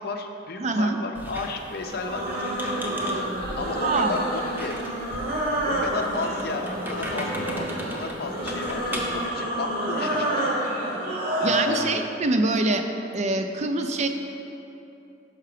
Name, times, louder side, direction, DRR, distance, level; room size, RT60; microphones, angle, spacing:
voice 1, 0.0-2.2 3.0-3.3 3.6-4.7 5.6-10.5 11.0-12.1, left 3 dB, 60° left, 4 dB, 0.5 m, -33 dB
voice 2, 0.6-1.0 3.8-4.2 11.4-12.8 13.1-14.1, right 2 dB, 40° right, 6 dB, 0.4 m, -24 dB
Squeak, 1.1-9.3, equal, 10° right, 0.7 m, -38 dB
sound 1, 1.8-11.8, right 1 dB, 55° right, 1.1 m, -29 dB
5.7 x 5.7 x 4.9 m, 2.9 s
head